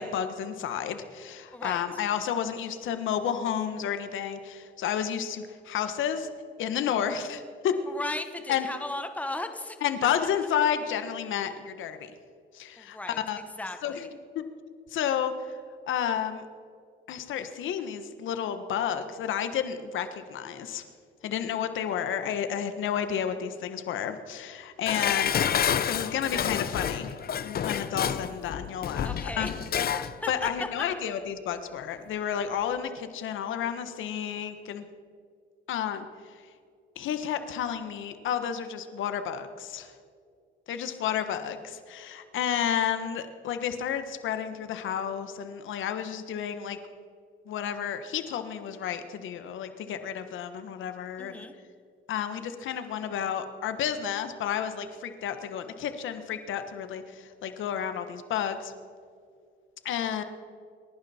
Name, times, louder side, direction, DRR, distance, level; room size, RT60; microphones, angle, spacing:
voice 1, 0.0-6.3 6.6-7.8 8.5-8.7 9.8-12.1 12.5-13.4 13.8-14.1 14.3-14.4 14.9-15.6 15.9-16.4 17.1-20.8 21.2-25.4 25.9-27.1 27.4-29.5 30.3-34.8 35.7-36.1 36.9-39.9 40.7-46.8 47.5-51.4 52.1-58.7 59.8-60.2, left 9 dB, 80° left, 9 dB, 1.4 m, -31 dB
voice 2, 1.5-1.8 7.9-9.8 12.8-13.2 13.6-14.0 29.0-29.5 29.9-30.3 51.2-51.5, left 2 dB, 5° left, 7 dB, 1.3 m, -36 dB
Dishes pots and pans, 24.9-30.1 30.5-30.6, left 8 dB, 50° left, 0.8 m, -29 dB
28.5 x 11.5 x 4.4 m, 2.3 s
cardioid pair, 90°, 20 cm